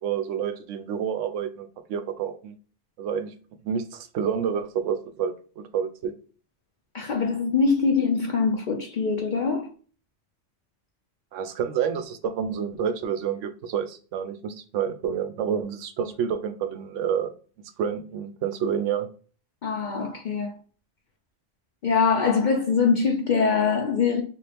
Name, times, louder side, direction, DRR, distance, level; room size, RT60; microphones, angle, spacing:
voice 1, 0.0-2.5 3.0-3.3 3.6-6.1 11.3-17.3 17.8-19.1, right 8 dB, 80° right, 0.9 m, -29 dB
voice 2, 6.9-9.7 19.6-20.6 21.8-24.2, left 5 dB, 55° left, 0.5 m, -23 dB
3.5 x 2.4 x 3.3 m
omnidirectional pair, 1.3 m